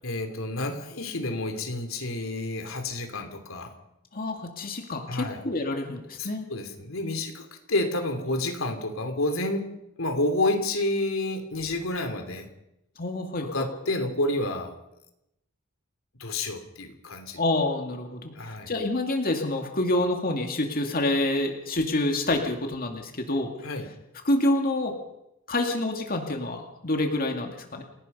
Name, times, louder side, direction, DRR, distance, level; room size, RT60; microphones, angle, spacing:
voice 1, 0.0-3.7 5.1-5.4 6.2-9.7 10.0-12.5 13.4-14.7 16.2-17.4 18.3-18.7 23.6-23.9, left 2 dB, 85° left, 7 dB, 3.0 m, -29 dB
voice 2, 4.1-6.5 13.0-13.7 17.4-23.5 24.2-25.0 25.5-27.8, left 2 dB, 45° left, 3 dB, 2.3 m, -27 dB
28.5 x 18.0 x 5.5 m, 0.84 s
head